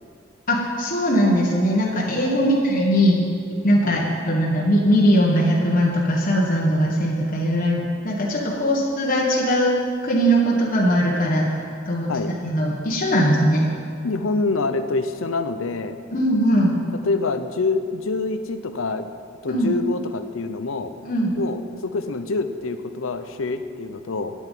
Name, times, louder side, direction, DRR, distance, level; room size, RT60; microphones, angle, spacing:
voice 1, 0.5-3.2 3.6-11.6 11.9-12.1 12.4-13.7 16.1-16.7 19.5-19.7 21.0-21.3, equal, 45° left, -4 dB, 1.4 m, -20 dB
voice 2, 14.0-16.0 17.0-19.1 19.4-20.9 21.4-24.3, left 3 dB, 90° left, 9 dB, 0.7 m, -26 dB
9.0 x 8.1 x 9.2 m, 2.3 s
head